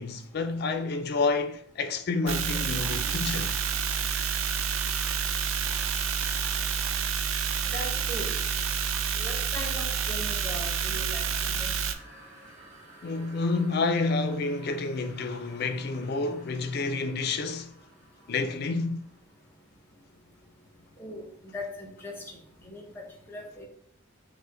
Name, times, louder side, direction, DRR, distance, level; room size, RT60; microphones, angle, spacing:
voice 1, 0.0-3.5 5.5-5.6 13.0-17.7 18.3-19.1, left 3 dB, 50° left, 0.4 m, -29 dB
sound 1, 2.3-11.9, right 7 dB, 75° right, 0.4 m, -29 dB
Toilet flush, 2.4-19.1, right 2 dB, 35° right, 1.3 m, -50 dB
voice 2, 7.7-8.3 9.2-11.7 21.0-21.2 21.5-22.1 22.6-23.6, left 1 dB, 10° left, 0.8 m, -39 dB
5.4 x 2.1 x 3.7 m
head